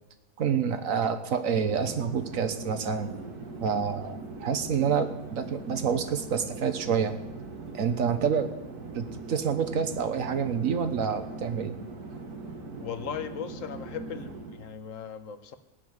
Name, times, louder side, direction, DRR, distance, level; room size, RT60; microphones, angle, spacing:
voice 1, 0.4-3.1 3.6-7.1 7.7-8.5 8.9-11.8, right 7 dB, 65° right, 9 dB, 1.5 m, -28 dB
Chatter / Fixed-wing aircraft airplane, 1.3-14.7, right 3 dB, 85° right, 2.2 m, -41 dB
voice 2, 12.8-15.6, left 7 dB, 60° left, 10 dB, 1.3 m, -38 dB
17.0 x 7.0 x 9.5 m, 0.96 s
omnidirectional pair, 1.6 m